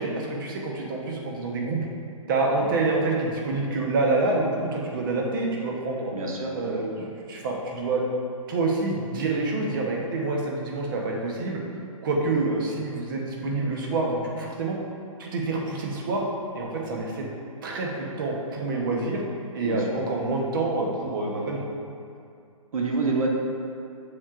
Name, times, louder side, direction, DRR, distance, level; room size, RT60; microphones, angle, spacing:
voice 1, 0.0-1.8 2.3-6.1 6.5-8.0 8.5-11.6 12.0-14.8 15.2-16.2 16.5-17.3 17.6-19.2 19.5-21.6, right 3 dB, 35° right, -1 dB, 0.9 m, -27 dB
voice 2, 6.1-6.5 19.6-20.0 22.7-23.3, right 3 dB, 70° right, -1 dB, 1.2 m, -27 dB
7.5 x 6.4 x 2.5 m, 2.5 s
hypercardioid pair, 160°, 18 cm